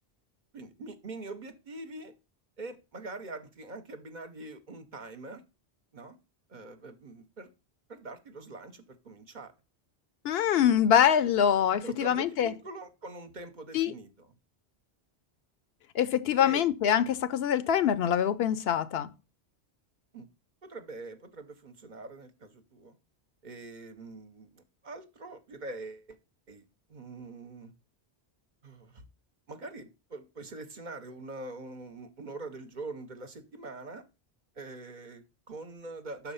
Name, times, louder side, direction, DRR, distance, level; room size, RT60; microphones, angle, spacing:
voice 1, 0.5-2.1 2.6-5.4 5.9-6.2 6.5-7.5 7.9-9.5 11.8-14.4 16.4-16.7 20.1-20.3 20.6-23.0 23.4-26.2 26.5-26.6 26.9-27.7 28.6-29.0 29.5-34.0 34.6-36.3, right 2 dB, 50° right, 0.8 m, -43 dB
voice 2, 10.2-12.5 13.7-13.9 15.9-19.1, left 9 dB, 70° left, 0.8 m, -24 dB
6.1 x 4.3 x 5.5 m
omnidirectional pair, 1.1 m